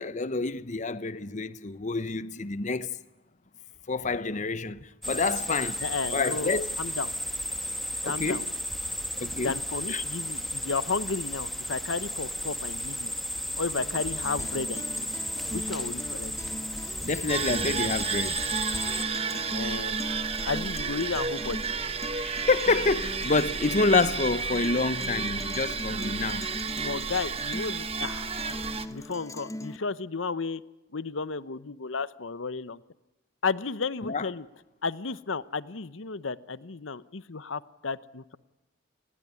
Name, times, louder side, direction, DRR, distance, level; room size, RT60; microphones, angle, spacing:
voice 1, 0.0-3.0 3.9-5.8 6.1-6.7 8.0-8.4 9.2-9.5 9.9-10.0 17.0-18.4 22.2-26.5 34.0-34.3, left 3 dB, 40° left, 0.9 m, -28 dB
sound 1, 5.0-19.0, equal, ahead, 2.1 m, -34 dB
voice 2, 5.8-7.1 8.0-8.5 9.3-13.1 13.6-15.1 15.5-16.3 19.2-20.0 20.4-21.6 26.3-26.4 26.8-28.3 28.9-30.6 30.9-32.8 33.4-34.5 34.8-38.4, left 4 dB, 85° left, 0.9 m, -33 dB
Guitar, 13.8-29.8, left 1 dB, 15° left, 1.1 m, -40 dB
sound 2, 17.3-28.9, right 5 dB, 30° right, 1.3 m, -32 dB
29.5 x 21.0 x 9.7 m
head